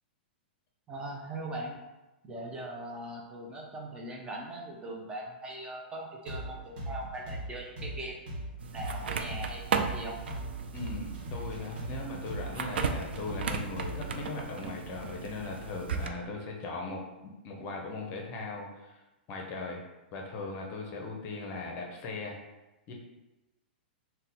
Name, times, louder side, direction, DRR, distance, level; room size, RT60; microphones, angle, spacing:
voice 1, 0.9-1.8 2.2-8.2 8.6-10.1, right 1 dB, 15° right, -1 dB, 0.5 m, -40 dB
sound 1, 6.3-14.2, right 1 dB, 55° right, 1.1 m, -39 dB
sound 2, 8.6-16.1, right 6 dB, 80° right, 0.3 m, -36 dB
voice 2, 10.7-19.0 19.3-19.8 20.1-22.4 22.9-23.0, left 3 dB, 35° left, 0 dB, 0.6 m, -39 dB
2.7 x 2.2 x 4.1 m, 1.0 s
hypercardioid pair, 125°, 6 cm